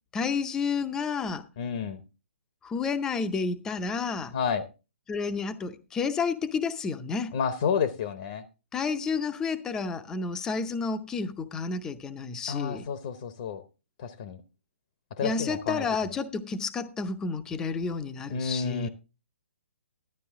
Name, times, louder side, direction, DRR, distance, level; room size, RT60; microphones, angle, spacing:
voice 1, 0.1-1.4 2.6-4.3 5.1-7.3 8.7-12.9 15.2-18.9, left 5 dB, 10° left, 0.5 m, -30 dB
voice 2, 1.6-2.0 4.3-4.7 7.3-8.4 12.5-13.6 14.0-14.4 15.1-16.1 18.3-18.9, left 6 dB, 40° left, 0.8 m, -30 dB
11.5 x 9.4 x 3.6 m
hypercardioid pair, 165°, 7 cm